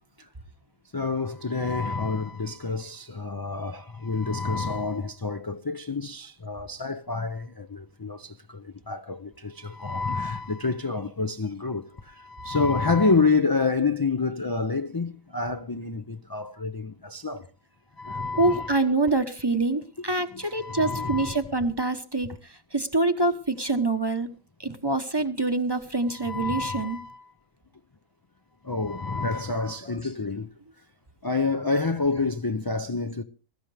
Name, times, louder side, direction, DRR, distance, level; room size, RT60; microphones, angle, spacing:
voice 1, 0.9-17.5 18.0-18.8 20.3-21.4 26.1-27.2 28.6-30.5 31.2-33.2, left 4 dB, 30° left, 0.4 m, -28 dB
voice 2, 18.4-22.3 22.7-24.3 24.6-27.1 29.5-30.0, right 2 dB, 20° right, 1.0 m, -26 dB
21.0 x 13.5 x 3.4 m
omnidirectional pair, 1.3 m